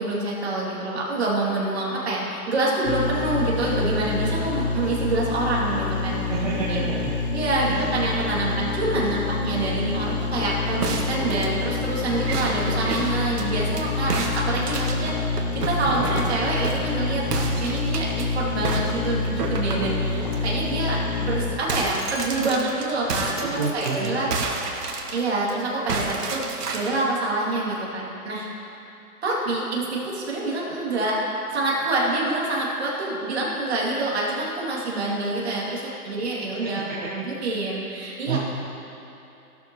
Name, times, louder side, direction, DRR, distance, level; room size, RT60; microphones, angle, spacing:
voice 1, 0.0-6.2 6.7-6.8 7.3-24.3 25.1-28.5 29.2-31.2 31.5-38.4, right 2 dB, 45° right, -5 dB, 2.7 m, -26 dB
sound 1, 2.8-21.6, left 4 dB, 35° left, 0.7 m, -27 dB
voice 2, 6.3-6.7 7.0-7.1 7.7-7.9 15.8-16.1 23.4-24.1 37.0-37.1 38.3-38.4, right 5 dB, 25° right, -9 dB, 1.1 m, -28 dB
sound 2, 10.8-13.8 14.1-16.9 17.3-18.2 18.6-20.4 20.8-21.0 21.2-25.5 25.9-27.1, right 3 dB, 80° right, 1.7 m, -31 dB
15.5 x 12.5 x 3.1 m, 3.0 s
hypercardioid pair, 175°, 46 cm